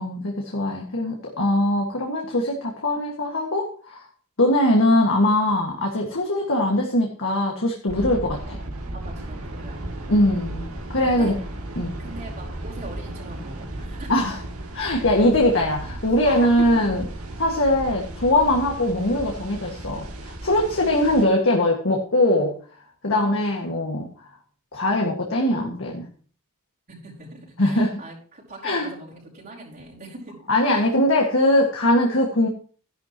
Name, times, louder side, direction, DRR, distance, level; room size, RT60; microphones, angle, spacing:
voice 1, 0.0-4.0 4.4-8.6 10.1-11.4 11.8-11.9 14.1-14.4 14.7-17.0 17.4-22.5 23.0-24.1 24.7-26.1 27.6-28.0 28.6-28.9 30.5-32.5, left 1 dB, 65° left, 0 dB, 1.9 m, -21 dB
sound 1, 7.9-21.2, right 1 dB, 75° right, 2.6 m, -35 dB
voice 2, 8.9-9.8 11.0-11.3 12.0-14.1 16.2-16.9 20.8-20.9 26.9-30.3, right 2 dB, 45° right, -7 dB, 5.3 m, -39 dB
14.0 x 11.0 x 3.0 m, 0.44 s
head